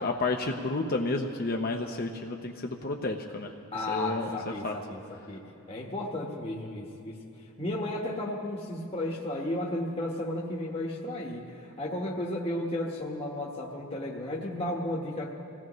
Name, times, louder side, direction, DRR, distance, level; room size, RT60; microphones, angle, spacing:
voice 1, 0.0-3.5 3.9-4.4 4.6-4.7, left 2 dB, 45° left, 2 dB, 0.8 m, -31 dB
voice 2, 3.7-5.4 5.7-7.2 7.6-15.3, left 1 dB, 25° left, -3 dB, 1.3 m, -33 dB
26.0 x 17.0 x 3.1 m, 2.6 s
head